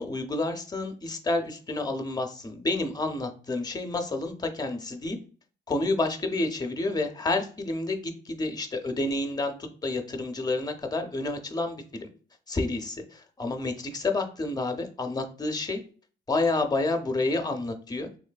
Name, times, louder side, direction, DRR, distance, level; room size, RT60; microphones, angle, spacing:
voice 1, 0.0-5.2 5.7-9.5 9.8-12.1 12.5-15.8 16.3-18.1, left 2 dB, 20° left, 5 dB, 0.6 m, -29 dB
3.2 x 3.1 x 2.2 m, 0.41 s
cardioid pair, 90°, 20 cm